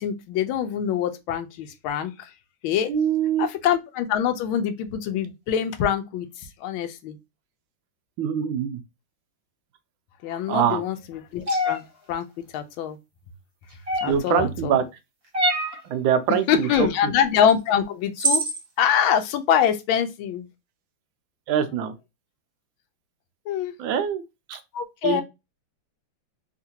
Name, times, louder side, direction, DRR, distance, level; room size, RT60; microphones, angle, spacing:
voice 1, 0.0-2.1 2.6-2.9 3.4-6.3 6.6-7.2 10.2-12.2 12.5-13.0 14.0-14.8 16.5-18.4 18.8-20.5 23.5-23.7 24.7-25.2, left 9 dB, 80° left, 1.4 m, -24 dB
voice 2, 2.9-3.5 8.2-8.8 10.5-10.8 14.0-14.8 15.9-16.9 21.5-21.9 23.8-24.2 24.5-24.6 25.0-25.2, right 8 dB, 80° right, 1.3 m, -23 dB
sound 1, 11.5-11.8 13.9-14.3 15.3-15.8 17.5-17.6 18.2-18.6, right 1 dB, 50° right, 0.4 m, -23 dB
3.7 x 2.5 x 2.7 m
omnidirectional pair, 2.2 m